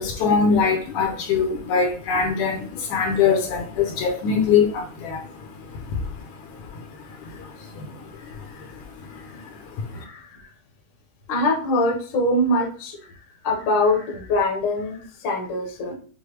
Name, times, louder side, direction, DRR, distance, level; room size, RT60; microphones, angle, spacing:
voice 1, 0.0-5.3 7.2-7.9, left 6 dB, 75° left, 2.0 m, -22 dB
voice 2, 9.9-10.4 11.3-13.0 13.4-15.9, left 1 dB, 60° left, 1.2 m, -24 dB
6.6 x 2.2 x 3.1 m
omnidirectional pair, 3.6 m